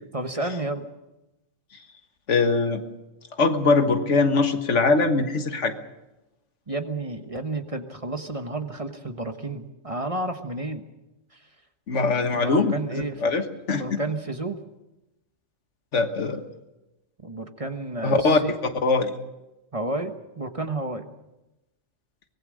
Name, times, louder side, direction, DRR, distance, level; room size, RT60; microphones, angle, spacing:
voice 1, 0.1-0.9 6.7-10.8 11.3-11.5 12.3-13.2 13.8-14.6 17.2-18.5 19.7-21.1, right 2 dB, 30° right, 7 dB, 1.3 m, -31 dB
voice 2, 2.3-2.8 3.4-5.8 11.9-14.0 15.9-16.4 18.0-18.4 18.8-19.1, left 3 dB, 80° left, 7 dB, 1.8 m, -22 dB
24.0 x 19.0 x 6.4 m, 0.98 s
omnidirectional pair, 1.2 m